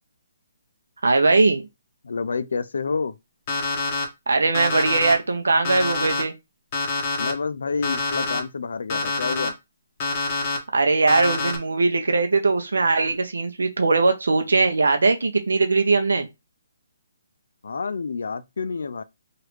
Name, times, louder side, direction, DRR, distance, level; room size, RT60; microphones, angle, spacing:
voice 1, 1.0-1.6 4.3-6.3 10.7-16.3, right 3 dB, 85° right, 0.5 m, -20 dB
voice 2, 2.0-3.2 7.2-9.6 17.6-19.0, left 5 dB, 75° left, 0.4 m, -28 dB
Alarm, 3.5-4.0 4.5-5.1 5.6-6.2 6.7-7.3 7.8-8.4 8.9-9.5 10.0-10.6 11.1-11.6, left 3 dB, 35° left, 0.9 m, -26 dB
3.0 x 2.4 x 3.1 m
hypercardioid pair, 150°, 0 cm